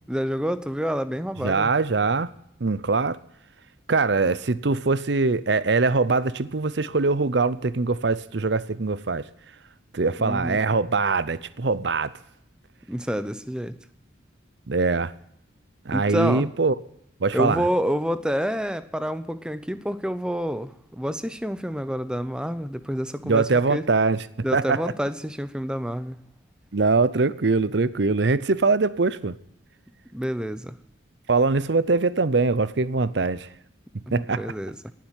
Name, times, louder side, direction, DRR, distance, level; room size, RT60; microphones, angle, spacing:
voice 1, 0.1-1.7 10.2-10.6 12.9-13.8 15.9-16.5 17.3-23.8 24.4-26.2 30.1-30.8 34.1-34.9, equal, 5° right, 0.7 m, -28 dB
voice 2, 1.4-2.3 2.6-3.2 3.9-9.3 9.9-12.1 14.7-15.1 15.9-16.7 17.2-17.6 23.2-24.2 24.5-24.8 26.7-29.4 31.3-33.5 34.1-34.4, right 3 dB, 65° right, 0.7 m, -22 dB
19.0 x 7.5 x 9.0 m
head